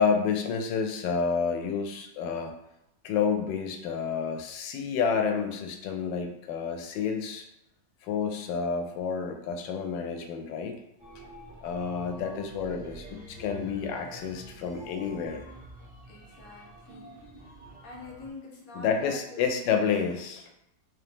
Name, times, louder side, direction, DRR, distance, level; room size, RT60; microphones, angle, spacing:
voice 1, 0.0-2.5 3.0-7.5 8.0-10.8 11.6-15.4 18.7-20.5, left 6 dB, 85° left, 5 dB, 1.3 m, -29 dB
sound 1, 11.0-18.3, right 1 dB, 15° right, 0.3 m, -47 dB
voice 2, 16.1-17.1 17.8-19.5, left 2 dB, 55° left, -1 dB, 1.2 m, -46 dB
4.0 x 2.8 x 3.4 m, 0.86 s
omnidirectional pair, 1.9 m